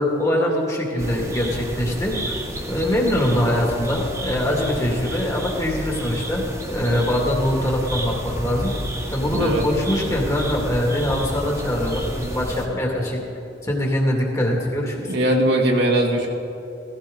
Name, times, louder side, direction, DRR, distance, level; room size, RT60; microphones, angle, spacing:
voice 1, 0.0-2.3 2.7-8.7 9.1-13.2 13.6-15.1, left 1 dB, 20° left, -2 dB, 2.2 m, -23 dB
sound 1, 1.0-12.7, right 1 dB, 15° right, 1.6 m, -31 dB
voice 2, 9.3-9.6 15.1-16.3, right 1 dB, 65° right, 0 dB, 2.0 m, -20 dB
16.0 x 16.0 x 3.9 m, 2.8 s
head